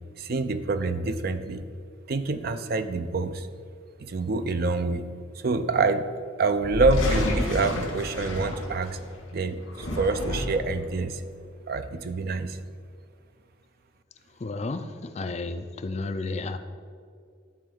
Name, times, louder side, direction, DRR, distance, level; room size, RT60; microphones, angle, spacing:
voice 1, 0.2-1.6 2.1-3.5 4.0-5.1 5.3-6.1 6.4-9.0 9.3-11.2 11.7-12.6, right 3 dB, 50° right, 10 dB, 0.4 m, -26 dB
sound 1, 6.6-9.1 9.6-10.8, left 1 dB, 70° left, 2.1 m, -29 dB
voice 2, 14.4-16.6, left 3 dB, 35° left, 8 dB, 0.4 m, -32 dB
12.0 x 4.3 x 3.8 m, 2.2 s
head